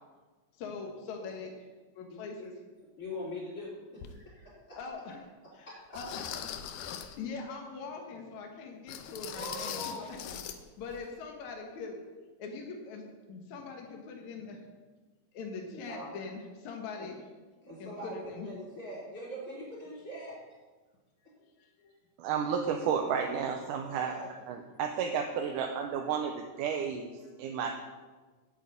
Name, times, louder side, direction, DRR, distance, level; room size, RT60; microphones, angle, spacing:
voice 1, 0.6-1.5 1.9-2.5 4.7-5.2 5.5-5.7 5.9-6.2 6.8-10.3 10.8-12.0 12.4-14.6 15.3-17.2 17.8-18.5 21.6-21.9 27.2-27.5, left 4 dB, 65° left, 1 dB, 2.6 m, -42 dB
voice 2, 2.1-4.8 5.4-5.7 9.3-10.1 15.7-16.2 17.6-18.2 18.4-20.3 21.2-21.3 23.9-24.3, left 1 dB, 25° left, -10 dB, 5.0 m, -43 dB
sound 1, 4.0-4.1 4.8-4.9 5.9-7.2 8.9-10.6 10.9-11.0 11.5-11.6, left 9 dB, 90° left, 2.4 m, -41 dB
voice 3, 22.2-24.1 24.5-27.1 27.4-27.7, right 7 dB, 80° right, 3 dB, 2.3 m, -32 dB
9.0 x 8.8 x 8.5 m, 1.3 s
omnidirectional pair, 3.7 m